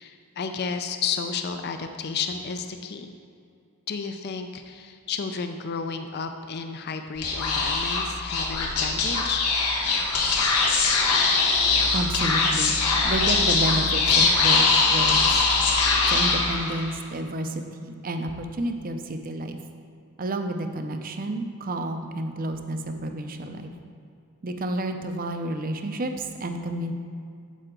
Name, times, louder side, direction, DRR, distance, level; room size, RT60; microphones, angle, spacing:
voice 1, 0.0-3.1 3.9-9.5, left 5 dB, 45° left, 7 dB, 0.4 m, -32 dB
Speech / Whispering, 7.2-17.0, left 4 dB, 90° left, 1.4 m, -22 dB
voice 2, 11.9-15.4 16.1-19.6 20.2-23.7 24.4-26.9, right 1 dB, 40° right, 6 dB, 0.6 m, -30 dB
9.2 x 7.6 x 3.8 m, 2.4 s
head